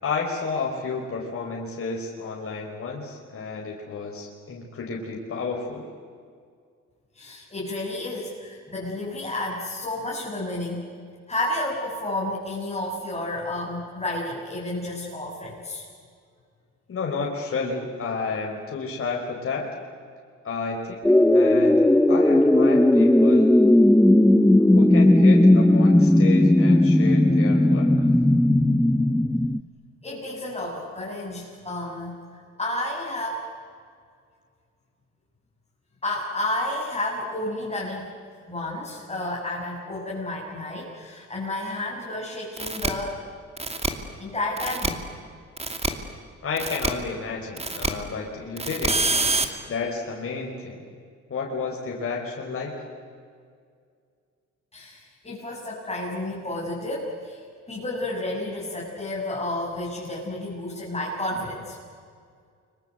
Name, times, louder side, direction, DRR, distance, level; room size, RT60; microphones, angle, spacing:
voice 1, 0.0-5.9 16.9-19.7 20.4-21.0 21.3-23.6 24.7-27.9 46.4-49.0 49.7-50.8 51.3-52.7, left 4 dB, 45° left, -1 dB, 4.9 m, -31 dB
voice 2, 7.1-10.8 11.3-15.9 30.0-33.5 36.0-38.1 38.5-43.2 44.2-45.0 54.7-57.4 57.7-61.8, left 1 dB, 20° left, -6 dB, 7.8 m, -31 dB
sound 1, 21.0-29.6, left 1 dB, 5° left, 0.9 m, -17 dB
sound 2, 42.6-42.9 43.6-43.9 44.6-44.9 45.6-45.9 46.6-46.9 47.6-47.9 48.6-49.5, right 3 dB, 20° right, 2.8 m, -25 dB
29.5 x 24.5 x 8.1 m, 2.2 s
cardioid pair, 90°, 30 cm